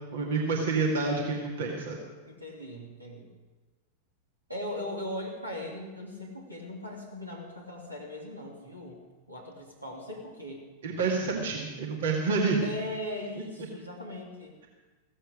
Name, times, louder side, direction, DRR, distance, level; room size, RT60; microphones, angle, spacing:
voice 1, 0.1-2.0 10.8-12.6, right 4 dB, 60° right, 0 dB, 2.1 m, -28 dB
voice 2, 2.3-3.3 4.5-9.0 9.3-10.6 12.6-14.6, left 1 dB, 85° right, -2 dB, 2.8 m, -39 dB
16.0 x 14.5 x 5.0 m, 1.2 s
figure-of-eight pair, 90°, 0 cm